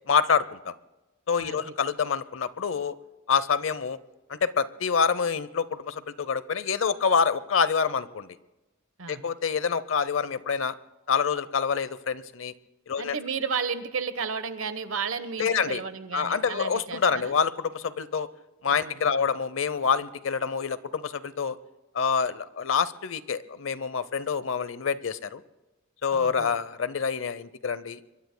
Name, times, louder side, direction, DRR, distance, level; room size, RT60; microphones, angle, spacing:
voice 1, 0.1-0.7 1.3-2.9 3.3-4.0 4.3-8.3 9.1-10.7 11.1-12.5 12.9-13.2 15.4-15.8 16.1-18.3 18.6-21.6 21.9-25.4 26.0-28.0, left 6 dB, 70° left, 16 dB, 0.8 m, -26 dB
voice 2, 1.4-1.7 9.0-9.2 13.0-17.3 18.7-19.3 26.1-26.5, right 5 dB, 80° right, 11 dB, 1.1 m, -33 dB
25.5 x 22.5 x 2.3 m, 1.1 s
head